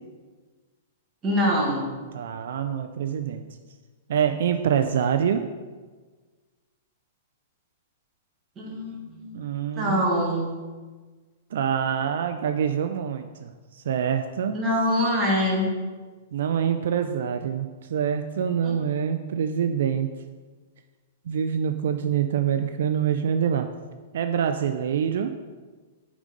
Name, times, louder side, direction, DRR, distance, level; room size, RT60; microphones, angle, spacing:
voice 1, 1.2-1.9 8.6-9.3 9.8-10.5 14.5-15.6 18.6-18.8, equal, 15° right, -3 dB, 1.5 m, -24 dB
voice 2, 2.1-3.4 4.1-5.5 9.3-10.1 11.5-14.5 16.3-20.1 21.3-23.7 24.1-25.3, right 8 dB, 70° right, 7 dB, 0.4 m, -25 dB
6.2 x 3.9 x 5.2 m, 1.4 s
hypercardioid pair, 160°, 0 cm